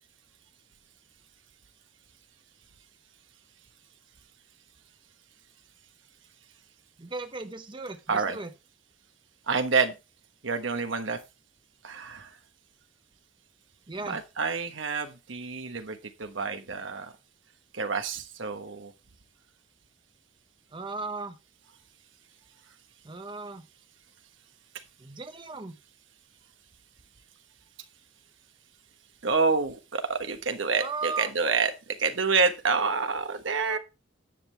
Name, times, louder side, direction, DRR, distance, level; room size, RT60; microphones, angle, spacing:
voice 1, 7.0-8.5 13.9-14.2 20.7-21.4 23.0-23.7 25.0-25.8 30.7-31.3 33.7-33.8, right 3 dB, 25° right, 7 dB, 0.7 m, -36 dB
voice 2, 9.5-9.9 10.4-11.2 11.8-12.4 14.1-17.1 17.7-18.9 29.2-33.8, right 4 dB, 75° right, 7 dB, 1.3 m, -28 dB
10.5 x 7.5 x 3.4 m, 0.28 s
head